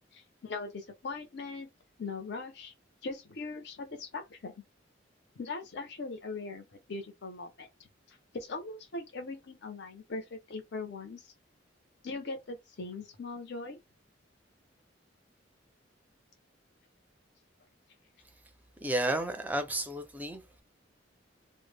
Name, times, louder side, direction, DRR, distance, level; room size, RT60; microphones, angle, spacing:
voice 1, 0.1-1.7 2.0-2.7 3.0-4.5 5.4-11.3 12.0-13.8, left 3 dB, 60° left, 0.6 m, -40 dB
voice 2, 18.8-20.6, right 1 dB, 10° right, 0.4 m, -32 dB
2.0 x 2.0 x 3.2 m
head